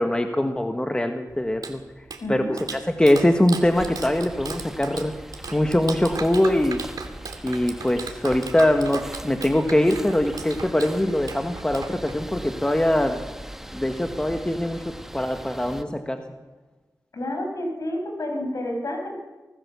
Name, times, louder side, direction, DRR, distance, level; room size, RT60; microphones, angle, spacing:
voice 1, 0.0-1.8 2.3-2.4 2.7-5.1 5.5-6.8 7.4-13.2 13.7-16.2, left 1 dB, 15° left, 6 dB, 1.5 m, -22 dB
Clapping, 1.3-12.4, right 4 dB, 75° right, 2.4 m, -38 dB
voice 2, 2.2-2.6 17.1-19.1, left 1 dB, 60° left, 2 dB, 6.6 m, -29 dB
sound 1, 3.6-15.8, right 1 dB, 5° right, 1.3 m, -40 dB
24.5 x 17.5 x 7.0 m, 1.2 s
wide cardioid pair, 75°, 6 cm